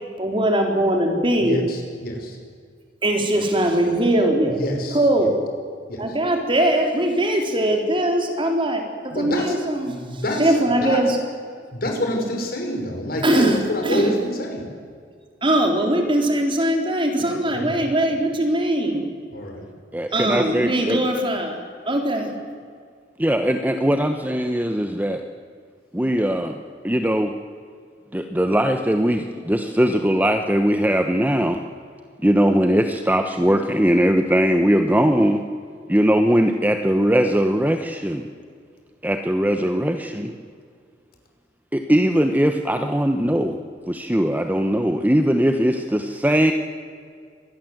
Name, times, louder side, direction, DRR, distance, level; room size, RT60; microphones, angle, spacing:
voice 1, 0.2-1.6 3.0-4.6 4.9-5.4 6.0-11.2 13.2-14.1 15.4-19.1 20.1-21.6 21.9-22.3, right 1 dB, 30° right, 3 dB, 3.8 m, -21 dB
voice 2, 1.4-2.4 4.5-5.3 5.9-6.2 9.1-9.6 9.9-10.5 10.8-11.1 11.7-14.7 17.3-18.1 19.3-19.7, equal, 55° left, 3 dB, 5.5 m, -28 dB
voice 3, 19.9-21.0 23.2-25.2 25.9-26.5 26.8-27.3 28.1-31.6 32.2-35.4 35.9-38.3 39.0-40.3 41.7-46.5, equal, 10° right, 6 dB, 1.1 m, -20 dB
25.5 x 20.0 x 8.0 m, 2.1 s
head